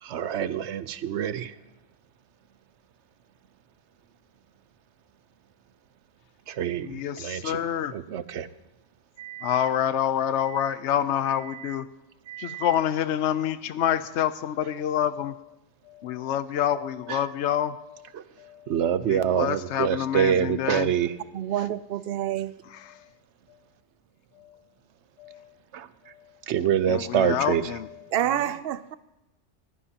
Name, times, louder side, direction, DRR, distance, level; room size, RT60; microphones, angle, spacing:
voice 1, 0.0-1.5 6.5-7.6 7.9-8.5 9.2-9.7 10.5-10.7 11.5-11.8 12.3-12.8 17.1-17.3 18.1-18.2 18.7-21.1 25.7-25.9 26.5-27.7, right 9 dB, 90° right, 14 dB, 1.0 m, -27 dB
voice 2, 6.8-7.9 9.4-11.8 12.4-15.5 15.9-18.1 18.4-18.7 19.1-20.9 22.7-23.0 25.2-25.4 26.9-27.9 28.3-28.5, left 10 dB, 90° left, 13 dB, 0.9 m, -27 dB
voice 3, 21.3-22.6 28.1-29.0, right 11 dB, 65° right, 14 dB, 0.8 m, -28 dB
21.0 x 15.0 x 2.9 m, 0.99 s
omnidirectional pair, 1.1 m